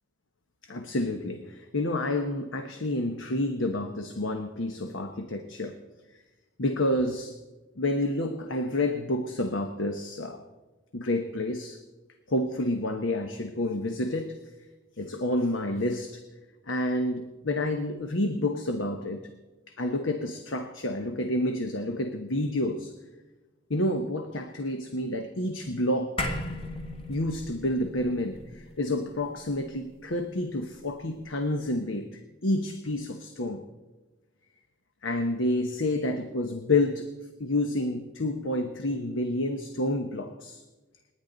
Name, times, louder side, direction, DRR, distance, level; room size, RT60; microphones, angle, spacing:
voice 1, 0.6-5.8 6.6-7.4 7.8-10.4 10.9-11.8 12.3-14.4 15.0-16.2 16.7-19.3 19.7-22.9 23.7-26.3 27.1-33.6 35.0-37.1 37.4-40.6, left 1 dB, 75° left, 6 dB, 1.0 m, -29 dB
sound 1, 26.2-30.8, left 1 dB, 25° left, 1.3 m, -37 dB
29.0 x 10.0 x 4.0 m, 1.2 s
head